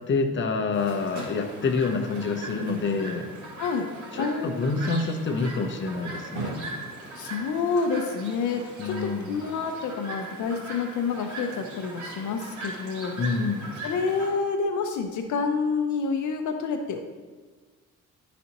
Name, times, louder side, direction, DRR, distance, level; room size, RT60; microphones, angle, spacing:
voice 1, 0.1-3.3 4.1-6.5 8.8-9.4 13.2-13.7, left 4 dB, 40° left, 4 dB, 0.8 m, -27 dB
Chirp tweet, 0.7-14.3, right 2 dB, 75° right, 2.0 m, -39 dB
voice 2, 3.6-3.9 4.2-4.8 7.1-13.1 13.8-17.0, left 5 dB, 75° left, 5 dB, 0.7 m, -28 dB
11.0 x 4.2 x 2.9 m, 1.4 s
cardioid pair, 90°, 30 cm